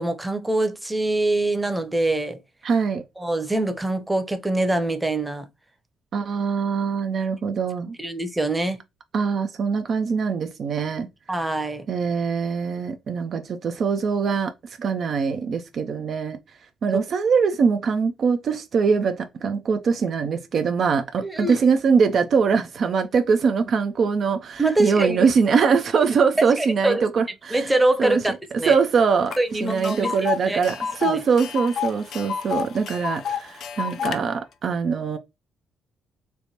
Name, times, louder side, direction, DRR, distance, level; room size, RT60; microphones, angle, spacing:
voice 1, 0.0-2.4 3.2-5.5 8.0-8.8 11.3-11.9 21.2-21.6 24.6-25.4 26.4-27.0 27.5-28.8 29.4-30.2 30.5-31.2, right 2 dB, 15° right, 0.7 m, -24 dB
voice 2, 2.6-3.0 6.1-8.0 9.1-11.1 11.9-14.5 14.8-16.4 16.8-27.7 28.0-28.2 28.6-35.2, right 5 dB, 55° right, 0.4 m, -22 dB
Tick, 29.3-29.4 29.7-34.2, left 8 dB, 60° left, 0.4 m, -29 dB
3.2 x 2.1 x 2.8 m
hypercardioid pair, 45°, 0 cm